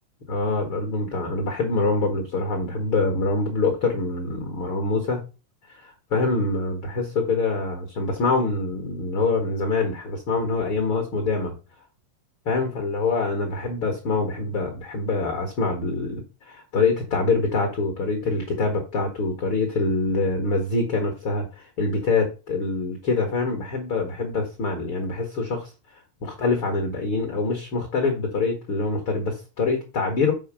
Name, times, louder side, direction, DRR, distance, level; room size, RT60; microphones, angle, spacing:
voice 1, 0.3-5.3 5.7-11.5 12.4-25.7 26.2-30.3, left 3 dB, 50° left, 4 dB, 1.6 m, -25 dB
7.2 x 4.8 x 6.2 m, 0.32 s
omnidirectional pair, 4.6 m